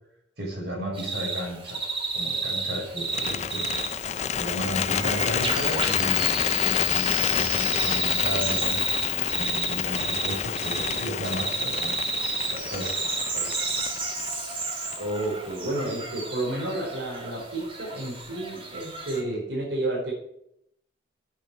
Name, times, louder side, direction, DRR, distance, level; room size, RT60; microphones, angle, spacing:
voice 1, 0.4-1.8 2.1-3.6 4.3-8.8 9.3-12.0 12.4-13.6, equal, 65° right, -2 dB, 6.0 m, -34 dB
sound 1, 0.9-19.2, right 3 dB, 30° right, 3.0 m, -32 dB
Bird, 3.0-15.2, left 9 dB, 40° left, 0.4 m, -28 dB
voice 2, 4.9-5.5 15.0-20.1, right 1 dB, 85° right, -3 dB, 4.7 m, -31 dB
9.0 x 8.6 x 9.0 m, 0.76 s
head